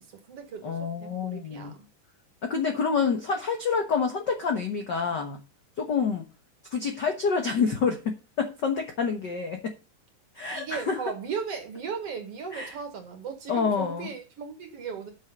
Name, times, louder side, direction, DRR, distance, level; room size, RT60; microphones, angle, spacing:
voice 1, 0.0-1.9 10.5-15.1, right 6 dB, 50° right, 2.7 m, -37 dB
voice 2, 0.6-1.7 2.4-5.4 5.8-6.2 6.7-9.7 10.3-11.0 12.5-12.7 13.5-14.1, left 5 dB, 60° left, 1.1 m, -27 dB
8.6 x 6.3 x 7.3 m
omnidirectional pair, 3.7 m